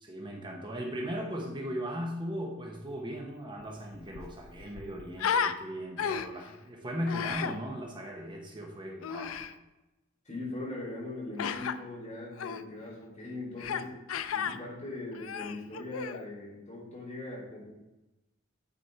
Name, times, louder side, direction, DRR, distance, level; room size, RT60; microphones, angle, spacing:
voice 1, 0.0-9.4, equal, 25° right, 0 dB, 0.9 m, -37 dB
Human voice, 3.6-3.7 3.9-5.6 6.0-6.5 7.1-7.5 9.0-9.5 11.4-11.7 12.4-12.6 13.6-13.8 14.1-14.6 15.1-16.2, left 7 dB, 90° left, 0.4 m, -33 dB
voice 2, 10.2-13.9 14.3-17.7, left 2 dB, 35° left, -5 dB, 2.8 m, -40 dB
9.3 x 4.3 x 4.4 m, 1.0 s
head